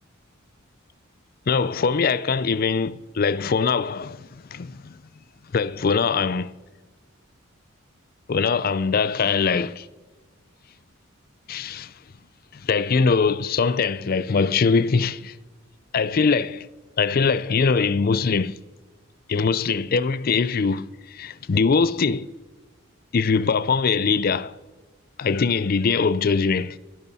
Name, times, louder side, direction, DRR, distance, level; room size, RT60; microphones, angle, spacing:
voice 1, 1.5-4.2 4.5-5.0 5.5-6.5 8.3-9.9 11.5-11.9 12.5-15.3 15.9-16.7 17.0-18.6 19.3-22.3 23.1-24.6 25.2-26.8, left 5 dB, 45° left, 0.4 m, -22 dB
24.0 x 11.0 x 4.1 m
head